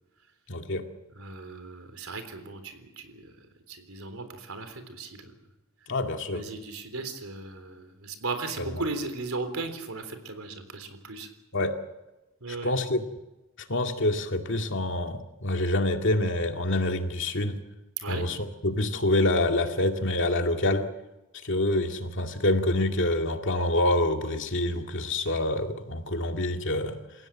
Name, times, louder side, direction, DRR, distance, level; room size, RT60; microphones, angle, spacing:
voice 1, 0.5-0.9 5.9-6.4 11.5-11.8 12.6-13.0 13.7-17.6 18.1-20.9 21.4-27.0, left 1 dB, 60° left, 4 dB, 2.2 m, -26 dB
voice 2, 1.2-3.2 3.7-5.3 6.3-11.3 12.4-12.7 18.0-18.3, right 3 dB, 90° right, 8 dB, 3.7 m, -36 dB
28.5 x 16.0 x 7.4 m, 1.0 s
head